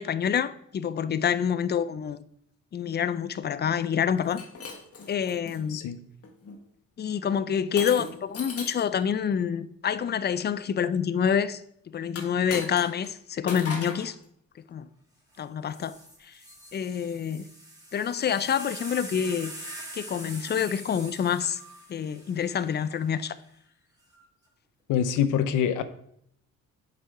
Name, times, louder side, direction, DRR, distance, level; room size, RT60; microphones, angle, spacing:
voice 1, 0.0-2.2 2.7-4.4 5.1-5.8 7.0-11.6 11.9-14.2 14.7-14.9 15.4-16.0 16.2-16.4 16.7-17.4 17.9-19.5 19.9-21.6 21.9-23.4, left 8 dB, 35° left, 0.5 m, -27 dB
Shatter, 4.2-5.6 6.2-6.6 7.8-8.9 12.1-13.1 13.5-14.1, left 4 dB, 50° left, 1.7 m, -37 dB
sound 1, 15.3-15.4 15.7-23.1 24.0-24.4, right 1 dB, 10° right, 2.9 m, -44 dB
voice 2, 24.9-25.8, left 8 dB, 85° left, 0.7 m, -25 dB
7.3 x 5.5 x 4.7 m
cardioid pair, 90°, 30 cm